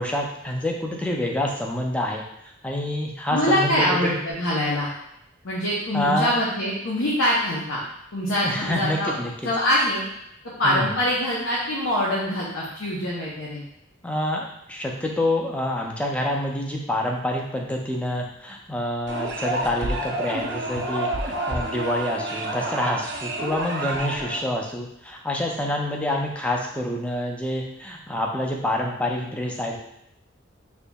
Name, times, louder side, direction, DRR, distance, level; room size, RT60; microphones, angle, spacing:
voice 1, 0.0-2.2 2.6-4.1 5.9-6.3 8.4-9.3 10.6-10.8 14.0-29.8, left 1 dB, 5° left, 0 dB, 0.4 m, -27 dB
voice 2, 3.3-4.9 5.4-7.8 8.1-9.1 9.4-10.0 10.6-13.6, equal, 90° left, -6 dB, 0.7 m, -24 dB
sound 1, 19.1-24.4, right 1 dB, 55° right, 0.5 m, -29 dB
4.3 x 2.8 x 2.2 m, 0.80 s
head